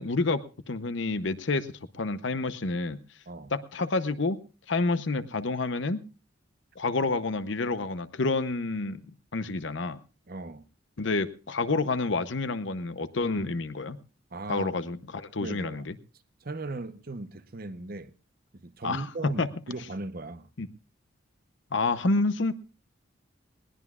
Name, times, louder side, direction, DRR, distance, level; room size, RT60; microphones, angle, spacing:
voice 1, 0.0-1.7 1.9-3.0 3.5-4.4 4.7-6.0 6.8-9.0 9.3-10.0 11.0-14.0 14.5-15.9 18.8-19.5 20.6-20.7 21.7-22.5, left 3 dB, 70° left, 0.8 m, -28 dB
voice 2, 10.3-10.7 14.3-14.7 15.4-15.9 16.4-18.1 18.5-20.5, right 2 dB, 50° right, 0.8 m, -38 dB
20.0 x 19.0 x 2.4 m
head